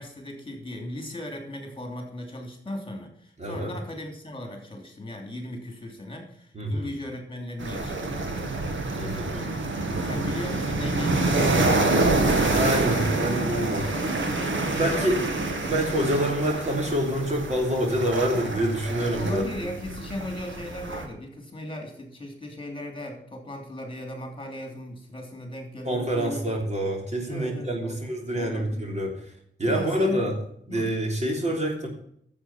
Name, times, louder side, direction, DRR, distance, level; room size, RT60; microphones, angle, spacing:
voice 1, 0.0-8.6 9.3-9.5 9.8-12.3 12.9-13.0 13.7-15.3 19.2-26.4 27.3-29.1 29.6-30.3 30.7-30.9, left 1 dB, 25° left, 3 dB, 3.1 m, -37 dB
voice 2, 3.4-3.7 6.5-6.9 9.0-9.5 12.5-13.9 14.7-15.2 15.6-19.4 25.8-29.2 29.6-30.3 30.7-31.9, right 1 dB, 35° right, 1 dB, 3.3 m, -26 dB
sound 1, 7.6-21.0, right 2 dB, 85° right, 2.0 m, -27 dB
11.0 x 7.7 x 5.8 m, 0.68 s
wide cardioid pair, 105°, 19 cm